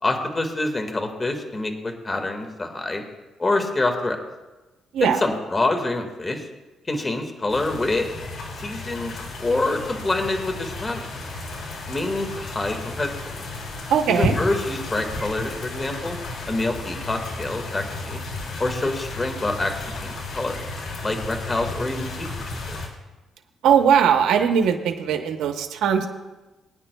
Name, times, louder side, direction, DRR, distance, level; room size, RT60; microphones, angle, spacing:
voice 1, 0.0-3.0 3.4-4.2 5.0-6.5 6.9-8.1 8.6-9.1 9.4-11.1 11.9-13.4 14.1-16.2 16.5-18.2 18.6-19.7 20.0-20.6 21.0-22.8, left 2 dB, 25° left, 5 dB, 1.7 m, -26 dB
sound 1, 7.5-22.9, left 2 dB, 70° left, 2.4 m, -33 dB
voice 2, 13.9-14.3 23.6-26.1, right 8 dB, 80° right, 6 dB, 0.8 m, -19 dB
22.0 x 9.7 x 2.3 m, 1.1 s
cardioid pair, 90°, 0 cm